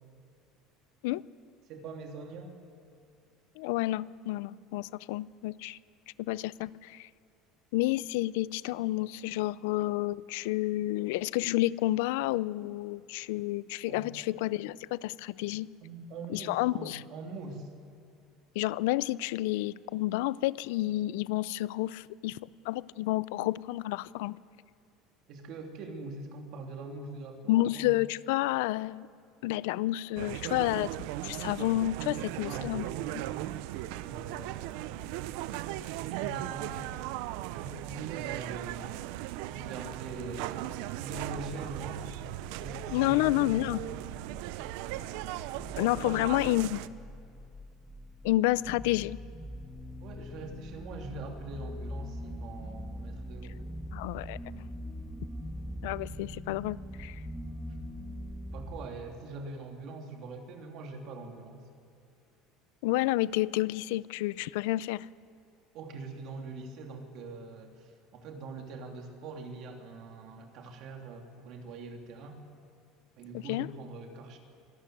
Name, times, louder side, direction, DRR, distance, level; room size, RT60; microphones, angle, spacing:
voice 1, 1.7-2.6 13.9-14.2 15.8-17.7 25.3-27.9 32.4-33.5 34.0-35.3 35.9-36.9 37.5-39.0 39.5-42.0 42.5-43.4 45.9-46.2 50.0-53.6 58.5-61.6 65.7-72.4 73.2-74.4, right 3 dB, 55° right, 3 dB, 2.9 m, -43 dB
voice 2, 3.6-5.8 6.2-7.1 7.7-15.7 16.3-17.0 18.6-22.4 22.6-24.4 27.5-29.1 29.4-32.9 42.9-43.8 45.8-46.8 48.2-49.2 53.9-54.4 55.8-57.2 62.8-65.1 73.3-73.7, left 17 dB, 85° left, 20 dB, 0.5 m, -30 dB
sound 1, 30.2-46.9, right 15 dB, 75° right, 0.6 m, -38 dB
sound 2, 41.6-58.9, equal, ahead, 1.5 m, -43 dB
24.5 x 13.0 x 9.3 m, 2.5 s
cardioid pair, 145°, 0 cm